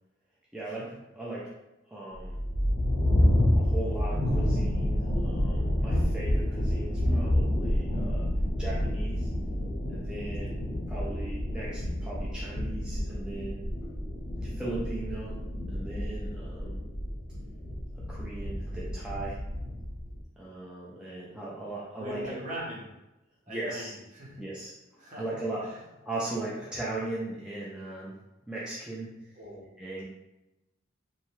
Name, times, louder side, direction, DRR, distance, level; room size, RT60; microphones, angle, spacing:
voice 1, 0.5-1.5 1.9-2.4 3.5-8.3 8.6-9.3 9.9-10.6 10.9-13.7 14.4-15.4 15.7-16.8 18.1-19.4 20.4-22.4 23.5-23.9 24.4-28.1 28.5-29.4 29.8-30.0, right 2 dB, 5° right, -7 dB, 0.3 m, -38 dB
sound 1, 2.2-20.2, left 1 dB, 50° left, 0.7 m, -29 dB
voice 2, 21.6-22.9 23.5-24.5 25.0-25.3 25.6-25.8 29.4-29.7, equal, 40° right, -5 dB, 0.8 m, -41 dB
2.7 x 2.1 x 3.0 m, 0.95 s
head